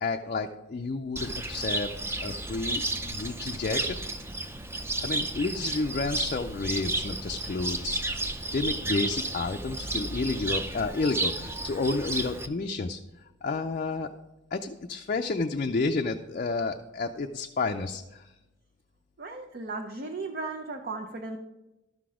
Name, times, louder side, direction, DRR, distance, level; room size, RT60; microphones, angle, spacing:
voice 1, 0.0-1.9 2.2-4.0 5.0-8.0 8.5-13.0 13.4-14.1 14.5-18.3, left 3 dB, 45° left, 4 dB, 0.4 m, -30 dB
Cricket, 1.2-12.5, right 2 dB, 15° right, 0.5 m, -32 dB
voice 2, 19.2-21.4, right 3 dB, 50° right, 3 dB, 0.7 m, -36 dB
12.5 x 6.0 x 4.9 m, 1.0 s
head